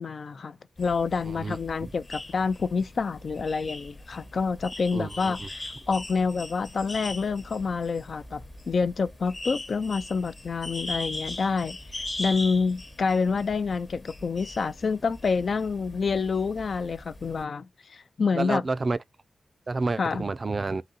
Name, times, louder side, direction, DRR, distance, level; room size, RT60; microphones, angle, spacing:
voice 1, 0.0-18.6 20.0-20.2, left 5 dB, 65° left, 0.4 m, -28 dB
sound 1, 0.8-17.4, left 2 dB, 35° left, 0.9 m, -40 dB
voice 2, 1.2-1.9 4.9-5.5 18.4-19.0 19.7-20.8, right 3 dB, 45° right, 0.4 m, -30 dB
3.9 x 2.7 x 4.0 m
cardioid pair, 55°, 0 cm